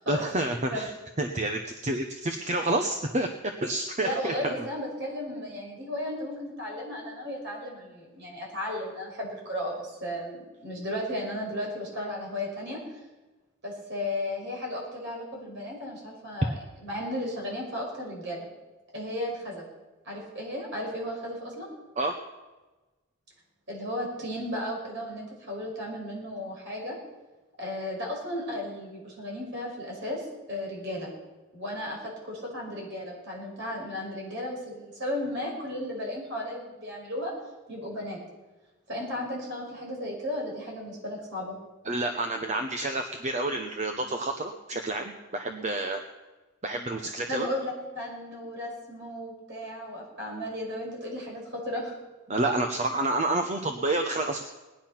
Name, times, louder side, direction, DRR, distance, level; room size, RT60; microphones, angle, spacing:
voice 1, 0.1-0.9 1.2-4.7 22.0-22.2 41.8-46.0 46.6-47.5 52.3-54.4, right 2 dB, 35° right, 5 dB, 0.9 m, -29 dB
voice 2, 4.0-12.8 13.6-16.5 16.8-18.4 18.9-19.6 20.0-21.7 23.7-27.0 27.6-31.1 31.5-37.3 37.7-38.2 38.9-41.6 47.3-52.0, left 1 dB, 55° right, -2 dB, 5.8 m, -34 dB
19.0 x 10.5 x 5.9 m, 1.2 s
head